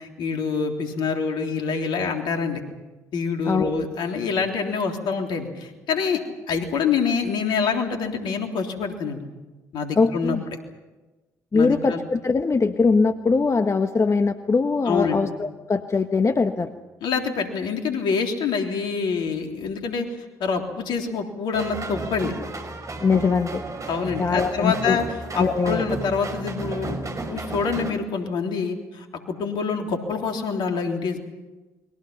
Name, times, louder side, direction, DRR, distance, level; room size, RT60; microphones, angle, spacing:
voice 1, 0.0-2.6 3.1-6.2 6.5-9.2 9.7-10.4 11.5-12.0 14.9-15.2 17.0-20.1 20.4-22.3 23.9-25.0 25.3-31.2, left 5 dB, 65° left, 3 dB, 3.5 m, -26 dB
voice 2, 9.9-10.4 11.5-16.7 23.0-23.6 24.2-25.0 25.4-25.8, left 4 dB, 35° left, 7 dB, 1.4 m, -21 dB
sound 1, 21.5-27.9, right 2 dB, 40° right, 5.0 m, -33 dB
30.0 x 22.5 x 5.7 m, 1.1 s
hypercardioid pair, 45°, 8 cm